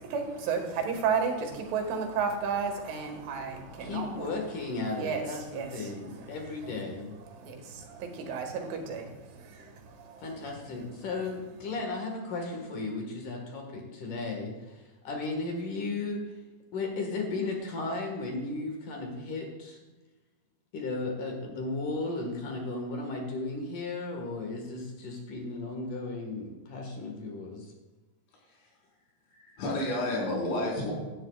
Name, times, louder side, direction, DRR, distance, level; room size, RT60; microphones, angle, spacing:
voice 1, 0.0-4.3 4.9-6.7 7.3-10.4, right 6 dB, 85° right, 3 dB, 4.3 m, -33 dB
voice 2, 3.8-7.1 10.2-16.4 16.7-19.8 20.7-27.7, left 3 dB, 55° left, 2 dB, 2.7 m, -35 dB
voice 3, 29.3-30.9, left 1 dB, 75° left, -5 dB, 6.9 m, -30 dB
17.0 x 12.0 x 2.4 m, 1.2 s
omnidirectional pair, 5.3 m